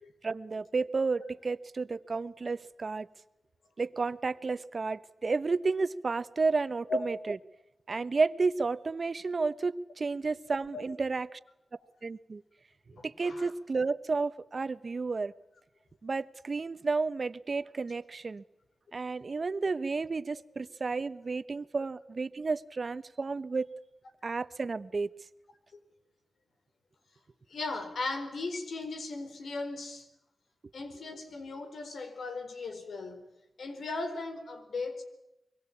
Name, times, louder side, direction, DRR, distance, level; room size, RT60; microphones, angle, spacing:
voice 1, 0.2-3.1 3.8-7.3 7.9-11.4 12.0-12.4 13.0-15.3 16.0-18.4 18.9-23.7 24.2-25.1, right 4 dB, 55° right, 1.1 m, -32 dB
voice 2, 13.0-13.5 27.5-30.1 30.7-33.3 33.6-35.0, left 3 dB, 90° left, 4.4 m, -37 dB
25.0 x 23.5 x 8.6 m
cardioid pair, 65°, 0 cm